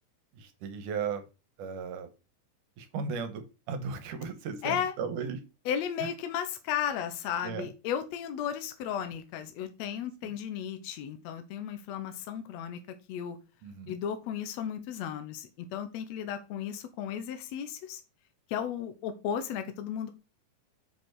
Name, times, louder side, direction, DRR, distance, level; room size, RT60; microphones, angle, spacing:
voice 1, 0.3-1.2 1.6-2.1 2.8-5.4 6.0-6.1 7.4-7.7 13.6-14.0, right 5 dB, 75° right, 9 dB, 2.6 m, -36 dB
voice 2, 4.6-4.9 5.6-12.8 13.1-13.4 13.9-18.0 18.5-20.1, left 9 dB, 70° left, 9 dB, 1.7 m, -34 dB
7.2 x 5.2 x 4.7 m, 0.30 s
omnidirectional pair, 3.8 m